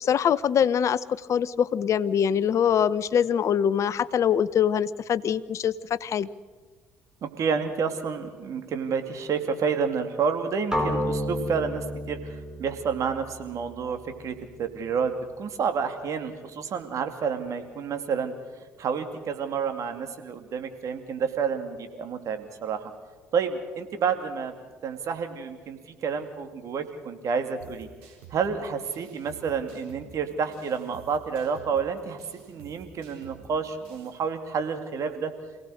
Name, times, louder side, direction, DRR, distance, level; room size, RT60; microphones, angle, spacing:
voice 1, 0.0-6.3, left 8 dB, 50° left, 17 dB, 0.8 m, -24 dB
voice 2, 7.2-18.3 18.8-22.9 23.3-24.5 24.8-27.9 28.3-32.2 32.5-35.3, right 6 dB, 55° right, 7 dB, 2.7 m, -29 dB
sound 1, 10.7-14.7, equal, 10° right, 5.6 m, -32 dB
sound 2, 27.6-34.2, right 5 dB, 80° right, 4.4 m, -50 dB
27.5 x 17.5 x 6.5 m, 1.4 s
hypercardioid pair, 55°, 7 cm